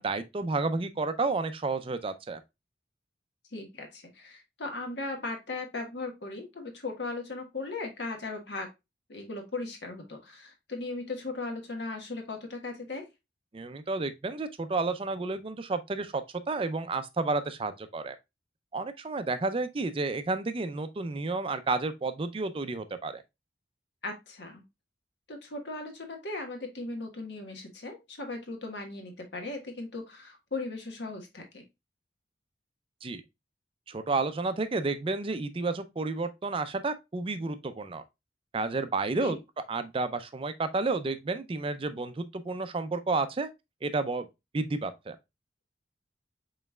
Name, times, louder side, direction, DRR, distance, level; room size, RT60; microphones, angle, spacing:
voice 1, 0.0-2.4 13.5-18.2 18.7-23.2 33.0-33.2 33.9-38.0 38.5-39.4 39.7-43.5 43.8-44.3 44.5-45.2, right 3 dB, 30° right, 0.4 m, -31 dB
voice 2, 3.5-8.7 9.1-13.0 24.0-24.6 25.3-31.6 39.2-39.4, left 3 dB, 75° left, 1.4 m, -38 dB
5.3 x 3.9 x 2.2 m
head